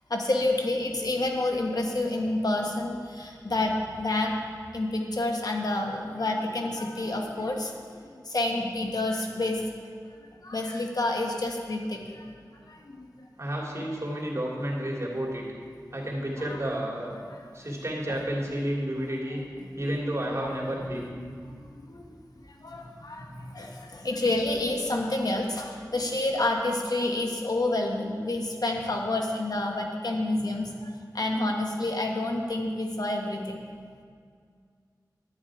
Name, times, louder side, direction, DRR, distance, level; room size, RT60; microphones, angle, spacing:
voice 1, 0.1-4.4 4.7-7.7 8.2-9.6 10.4-12.3 12.7-13.1 16.4-16.6 19.8-19.9 20.4-20.5 20.9-21.0 21.5-21.6 21.9-22.1 22.6-33.6, left 2 dB, 65° left, 1 dB, 1.5 m, -29 dB
voice 2, 13.4-15.5 15.9-17.1 17.5-19.4 19.8-21.1, right 1 dB, 40° right, -3 dB, 2.9 m, -31 dB
11.5 x 9.5 x 4.8 m, 2.1 s
wide cardioid pair, 40°, 7 cm